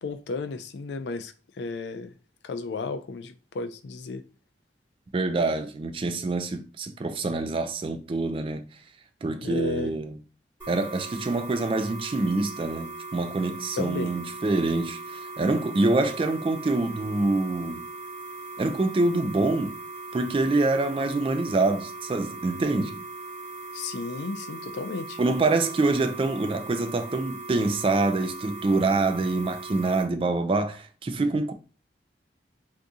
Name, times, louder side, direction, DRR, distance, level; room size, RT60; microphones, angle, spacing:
voice 1, 0.0-2.1 2.4-4.2 9.4-9.9 13.8-14.1 23.7-25.2, left 4 dB, 75° left, 0.4 m, -33 dB
voice 2, 5.1-8.7 9.2-10.1 10.7-17.9 18.6-19.8 20.1-23.0 25.2-31.5, right 2 dB, 30° right, 0.3 m, -26 dB
sound 1, 10.6-30.0, right 3 dB, 10° right, 1.4 m, -39 dB
2.6 x 2.6 x 3.5 m
head